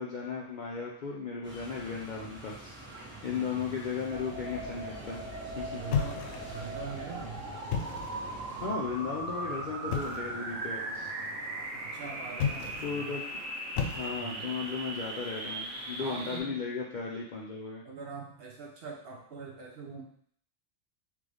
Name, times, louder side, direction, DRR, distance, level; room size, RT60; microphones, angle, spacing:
voice 1, 0.0-5.2 5.6-5.8 8.6-11.1 12.8-13.2 14.0-17.8, left 5 dB, 60° left, -3 dB, 0.5 m, -36 dB
sound 1, 1.4-8.7, right 2 dB, 10° right, 0.8 m, -47 dB
voice 2, 3.3-3.7 5.7-7.4 11.8-13.1 14.2-14.6 16.0-16.6 17.8-20.0, right 4 dB, 55° right, 0 dB, 0.8 m, -43 dB
sound 2, 4.1-16.4, right 2 dB, 75° right, 1.4 m, -39 dB
sound 3, 5.9-6.7 7.6-8.3 9.9-10.3 12.3-13.0 13.7-14.5, left 7 dB, 90° left, 1.0 m, -33 dB
3.8 x 3.2 x 3.4 m, 0.63 s
omnidirectional pair, 1.4 m